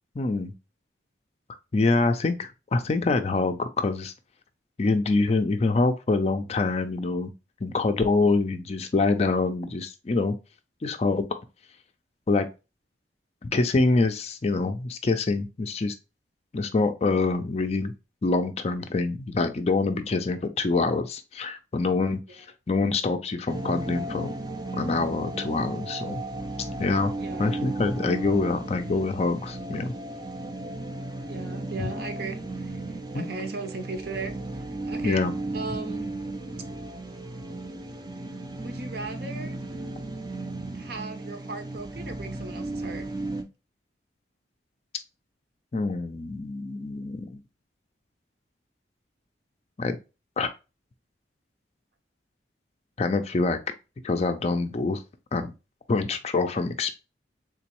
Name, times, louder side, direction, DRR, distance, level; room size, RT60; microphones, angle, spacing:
voice 1, 0.2-0.5 1.7-4.1 4.8-7.3 7.6-10.3 10.8-11.3 12.3-12.5 13.4-16.0 16.5-17.9 18.2-24.3 24.7-26.2 26.8-27.1 27.4-29.9 31.8-31.9 33.1-33.3 35.0-35.3 45.7-47.4 49.8-50.0 50.4-50.5 53.0-53.6 54.0-55.0 55.3-55.5 55.9-57.0, left 3 dB, 35° left, 0.4 m, -25 dB
sound 1, 23.5-43.4, right 2 dB, 25° right, 0.4 m, -35 dB
voice 2, 27.2-27.6 31.3-35.3 35.5-36.1 38.6-39.6 40.7-43.0, right 3 dB, 60° right, 0.7 m, -37 dB
3.7 x 3.0 x 2.9 m
head